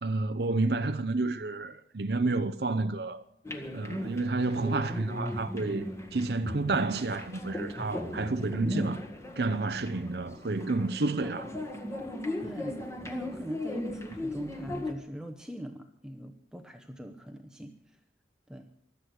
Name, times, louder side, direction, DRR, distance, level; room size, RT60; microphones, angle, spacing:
voice 1, 0.0-3.2 3.7-9.0 9.4-11.5, right 3 dB, 65° right, 0.7 m, -30 dB
sound 1, 3.4-14.9, left 1 dB, 15° left, 1.8 m, -37 dB
voice 2, 12.4-12.8 13.1-17.7 18.5-18.6, equal, 5° right, 0.9 m, -40 dB
24.5 x 8.3 x 6.4 m
head